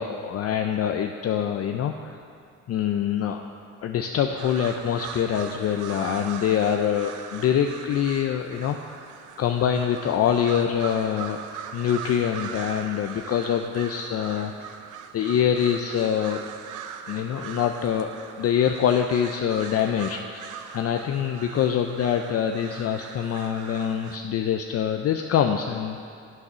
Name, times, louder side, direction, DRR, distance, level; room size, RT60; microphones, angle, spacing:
voice 1, 0.0-2.2 2.7-3.4 3.8-9.1 9.4-11.4 11.7-14.7 15.1-16.4 17.1-18.1 18.4-26.0, left 9 dB, 55° left, 4 dB, 0.5 m, -25 dB
sound 1, 4.4-24.2, right 8 dB, 80° right, 0.6 m, -40 dB
8.0 x 5.7 x 6.1 m, 2.3 s
cardioid pair, 90°, 30 cm